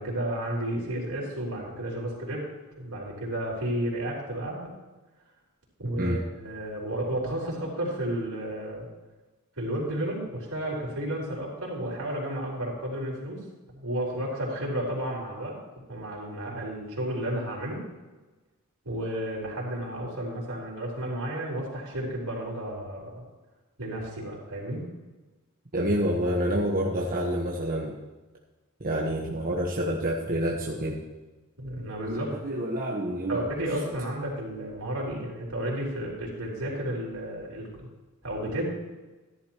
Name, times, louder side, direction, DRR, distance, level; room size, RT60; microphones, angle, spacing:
voice 1, 0.0-2.5 2.8-4.7 5.8-8.9 9.6-13.4 13.7-15.6 15.9-17.8 18.8-23.2 23.8-24.9 31.6-32.3 33.3-37.9 38.2-38.6, right 1 dB, 85° right, -3 dB, 4.3 m, -32 dB
voice 2, 5.8-6.2 25.7-28.0 28.8-31.0 32.1-33.5, right 1 dB, 40° right, -2 dB, 1.3 m, -28 dB
14.0 x 11.5 x 3.0 m, 1.2 s
head